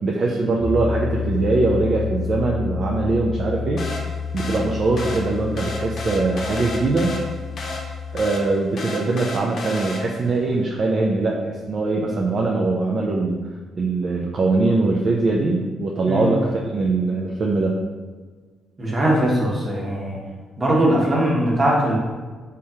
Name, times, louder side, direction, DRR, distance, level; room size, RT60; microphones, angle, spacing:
voice 1, 0.0-3.8 4.3-7.1 8.1-13.4 13.8-17.8, right 3 dB, 50° right, -1 dB, 0.4 m, -22 dB
Piano, 0.6-8.3, left 5 dB, 20° left, 0.4 m, -29 dB
sound 1, 3.8-10.4, left 1 dB, 55° left, 0.7 m, -33 dB
voice 2, 18.8-20.2 20.6-22.0, right 1 dB, 30° right, -3 dB, 1.0 m, -20 dB
3.5 x 3.1 x 2.7 m, 1.4 s
cardioid pair, 90°, 0 cm